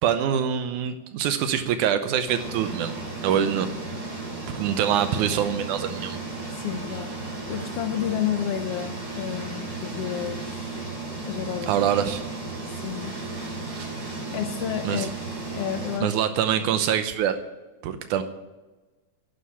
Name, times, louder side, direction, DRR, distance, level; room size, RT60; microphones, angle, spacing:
voice 1, 0.0-2.9 3.2-3.7 4.5-6.2 11.7-12.2 14.8-15.1 16.0-17.4 17.8-18.2, right 9 dB, 85° right, 9 dB, 2.3 m, -24 dB
sound 1, 2.3-16.0, right 3 dB, 30° right, 4.5 m, -34 dB
voice 2, 6.5-7.2 7.5-10.9 11.2-11.7 12.7-13.2 14.3-15.1 15.5-16.2, left 10 dB, 75° left, 7 dB, 1.5 m, -31 dB
11.5 x 9.8 x 8.4 m, 1.2 s
omnidirectional pair, 3.5 m